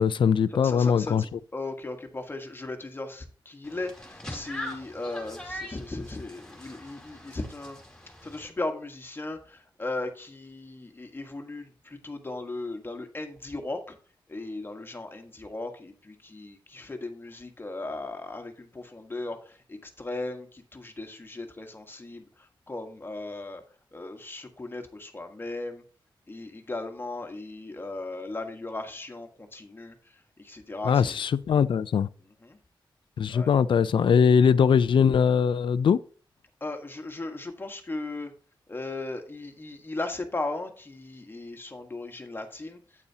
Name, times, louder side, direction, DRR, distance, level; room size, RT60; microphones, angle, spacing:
voice 1, 0.0-1.4 30.8-32.1 33.2-36.0, left 7 dB, 75° left, 0.5 m, -21 dB
voice 2, 0.5-7.8 8.2-13.9 14.3-22.2 22.7-23.6 23.9-25.8 26.3-29.9 30.4-31.1 32.4-32.6 33.3-33.5 36.6-38.3 38.7-42.8, left 2 dB, 25° left, 1.5 m, -37 dB
sound 1, 3.6-8.5, left 1 dB, 10° left, 2.4 m, -42 dB
8.9 x 8.5 x 2.8 m
wide cardioid pair, 110°, 9 cm